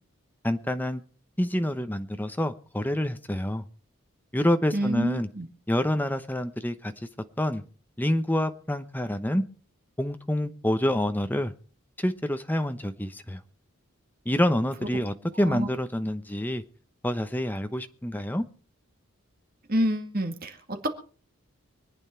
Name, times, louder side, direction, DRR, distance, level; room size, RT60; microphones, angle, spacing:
voice 1, 0.4-1.0 1.4-3.6 4.3-5.3 5.7-6.9 7.4-7.6 8.0-9.4 10.0-11.5 12.0-13.4 14.3-16.6 17.0-18.4, left 1 dB, 10° left, 9 dB, 0.9 m, -27 dB
voice 2, 4.7-5.5 15.3-15.7 19.7-20.9, equal, 40° right, 6 dB, 2.0 m, -28 dB
25.0 x 9.0 x 4.5 m, 0.38 s
head